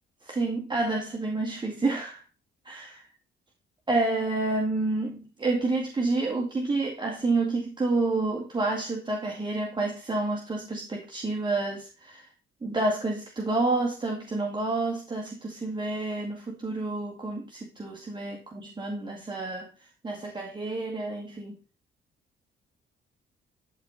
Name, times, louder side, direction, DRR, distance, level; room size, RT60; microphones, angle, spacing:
voice 1, 0.2-2.2 2.6-3.1 3.9-12.3 12.6-21.6, right 2 dB, 25° right, 2.1 m, -29 dB
12.5 x 4.4 x 4.1 m
cardioid pair, 90°, 20 cm